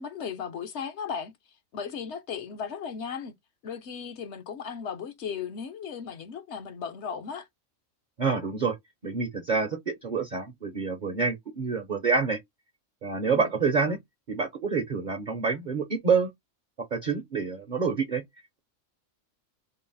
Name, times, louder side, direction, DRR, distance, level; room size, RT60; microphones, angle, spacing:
voice 1, 0.0-1.3 1.7-3.3 3.6-7.5 13.3-13.5, left 6 dB, 60° left, 1.0 m, -36 dB
voice 2, 8.2-8.8 9.0-12.4 13.0-14.0 14.3-16.3 16.9-18.2, right 5 dB, 45° right, 0.7 m, -27 dB
3.8 x 2.0 x 3.9 m
omnidirectional pair, 1.4 m